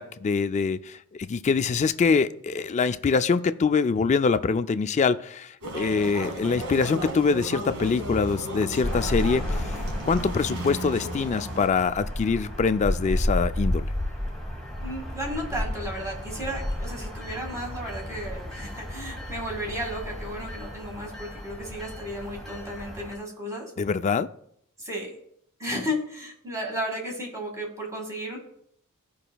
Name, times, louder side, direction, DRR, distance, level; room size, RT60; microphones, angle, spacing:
voice 1, 0.0-9.8 10.1-13.9 23.8-24.3, left 5 dB, 30° left, 11 dB, 0.3 m, -24 dB
sound 1, 5.6-11.7, right 1 dB, 80° right, 1.4 m, -34 dB
sound 2, 8.8-23.1, left 1 dB, ahead, 1.7 m, -32 dB
voice 2, 14.8-23.7 24.8-25.1 25.6-28.4, equal, 15° right, 0 dB, 2.0 m, -34 dB
15.5 x 5.4 x 2.3 m, 0.70 s
head